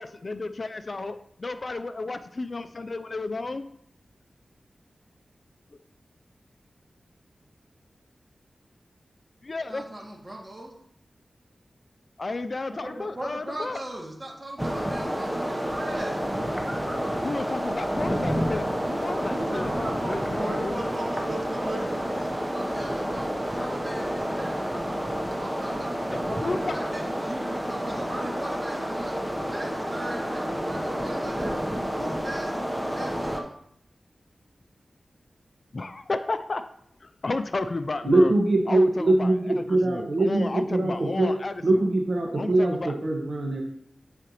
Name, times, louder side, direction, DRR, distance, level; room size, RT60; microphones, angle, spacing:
voice 1, 0.0-3.7 9.4-9.8 12.2-13.8 17.2-18.7 19.0-20.8 26.4-26.8 35.7-36.7 37.0-38.3 38.7-39.3 39.7-41.6 42.4-42.9, left 3 dB, 50° left, 11 dB, 0.4 m, -32 dB
voice 2, 9.7-10.7 12.8-16.2 18.9-23.3 23.5-24.6 25.4-29.2 29.5-31.5 31.8-33.5, right 1 dB, 35° right, -3 dB, 2.3 m, -38 dB
sound 1, 14.6-33.4, equal, 10° right, 0.9 m, -29 dB
voice 3, 38.0-41.3 41.6-43.6, right 2 dB, 65° right, 0 dB, 1.5 m, -22 dB
9.8 x 4.9 x 3.0 m, 0.69 s
wide cardioid pair, 70°, 0 cm